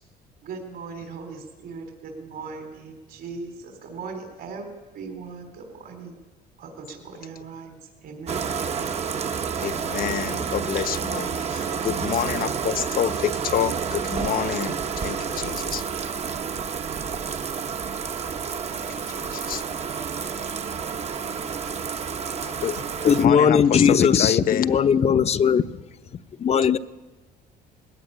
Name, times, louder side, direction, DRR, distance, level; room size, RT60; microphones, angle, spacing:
voice 1, 0.4-6.1 6.6-8.4, right 4 dB, 65° right, 4.0 m, -39 dB
Bathtub (filling or washing), 8.3-23.3, right 6 dB, 40° right, 1.1 m, -29 dB
voice 2, 9.6-15.9 18.5-19.6 20.4-20.8 22.2-24.8 25.3-25.5, left 10 dB, 60° left, 1.1 m, -28 dB
voice 3, 23.1-25.6 26.4-26.8, left 7 dB, 40° left, 0.8 m, -18 dB
20.0 x 17.5 x 9.9 m
cardioid pair, 110°, 17 cm